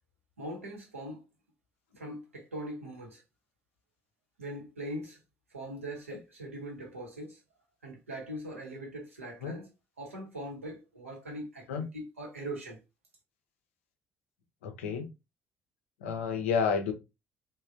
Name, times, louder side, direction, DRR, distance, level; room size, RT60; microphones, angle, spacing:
voice 1, 0.4-1.2 2.0-3.2 4.4-5.2 5.5-7.4 7.8-9.7 10.0-12.8, right 1 dB, 85° right, 0.7 m, -41 dB
voice 2, 14.6-15.0 16.0-16.9, left 6 dB, 70° left, 0.5 m, -30 dB
3.1 x 2.1 x 2.4 m
figure-of-eight pair, 50°, 7 cm